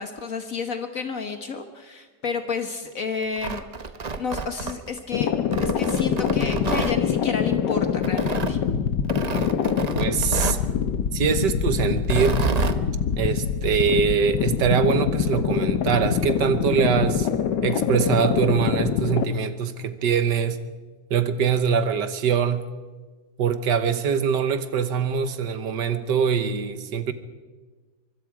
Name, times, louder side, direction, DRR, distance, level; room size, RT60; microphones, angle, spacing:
voice 1, 0.0-3.6 4.2-5.3 5.6-8.6, left 5 dB, 55° left, 6 dB, 1.6 m, -31 dB
Tearing, 3.2-5.0 5.5-7.0 8.0-8.5 9.1-10.7 12.0-12.8, right 4 dB, 40° right, 0.6 m, -29 dB
sound 1, 5.1-19.2, left 8 dB, 80° left, 1.6 m, -24 dB
voice 2, 9.9-10.6 11.1-12.5 13.2-17.3 17.6-20.6 21.1-22.7 23.4-27.1, right 6 dB, 80° right, 11 dB, 1.7 m, -23 dB
24.0 x 23.5 x 4.8 m, 1.4 s
omnidirectional pair, 1.9 m